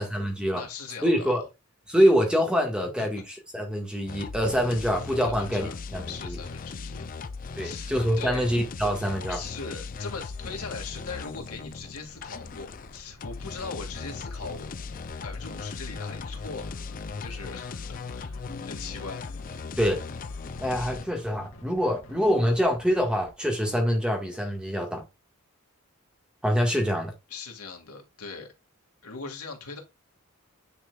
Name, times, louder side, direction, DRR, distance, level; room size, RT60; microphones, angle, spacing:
voice 1, 0.0-0.6 1.0-1.4 1.9-3.2 3.5-6.4 7.6-9.4 19.8-20.0 20.6-25.0 26.4-27.1, equal, 5° right, 1.7 m, -25 dB
voice 2, 0.5-1.4 2.8-3.1 5.3-5.8 6.1-7.0 7.6-8.4 9.3-14.7 15.2-16.7 17.2-18.3 18.7-19.3 27.3-28.5 29.0-29.8, left 4 dB, 90° left, 2.3 m, -40 dB
sound 1, 4.1-21.1, left 4 dB, 40° left, 0.4 m, -38 dB
sound 2, 10.3-23.3, left 1 dB, 65° left, 2.3 m, -50 dB
9.6 x 4.8 x 2.4 m
head